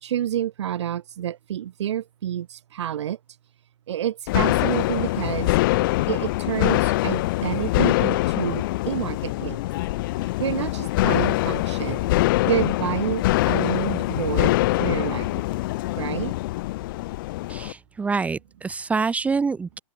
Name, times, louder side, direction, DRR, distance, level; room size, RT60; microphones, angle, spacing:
voice 1, 0.0-3.2 3.9-5.6 6.1-9.6 10.2-12.1 12.5-15.4 16.0-16.3, right 11 dB, 60° right, 2.2 m, -29 dB
sound 1, 4.3-17.7, left 19 dB, 40° left, 2.0 m, -24 dB
voice 2, 17.5-19.8, right 4 dB, 10° right, 1.1 m, -26 dB
open air
hypercardioid pair, 135°, 17 cm